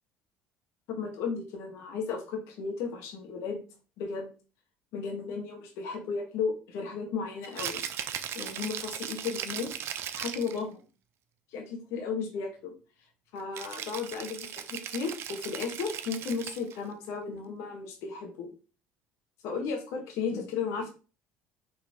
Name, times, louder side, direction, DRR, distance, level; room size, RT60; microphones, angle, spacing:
voice 1, 0.9-3.6 4.0-4.3 4.9-7.8 8.3-9.7 10.1-10.8 11.5-12.7 13.3-18.5 19.4-20.9, left 5 dB, 70° left, 3 dB, 1.3 m, -34 dB
Rattle (instrument), 7.4-10.6 13.5-16.8, right 9 dB, 60° right, 0.5 m, -38 dB
4.4 x 3.2 x 3.7 m, 0.34 s
supercardioid pair, 80°, 5 cm